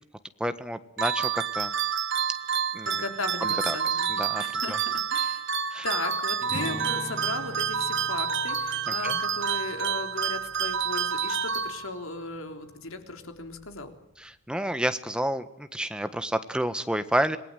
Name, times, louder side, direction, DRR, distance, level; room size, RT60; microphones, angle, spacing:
voice 1, 0.4-1.7 2.7-3.0 3.4-4.8 5.7-5.9 8.9-9.2 14.2-17.4, right 1 dB, 5° right, 10 dB, 1.4 m, -30 dB
sound 1, 1.0-12.2, right 7 dB, 60° right, 1.5 m, -29 dB
voice 2, 2.9-4.1 4.4-5.4 5.8-13.9, left 3 dB, 75° left, 6 dB, 3.7 m, -36 dB
Acoustic guitar, 6.5-12.4 12.7-12.9 13.4-13.8, right 2 dB, 40° right, 5.7 m, -42 dB
27.5 x 20.0 x 9.3 m, 0.82 s
head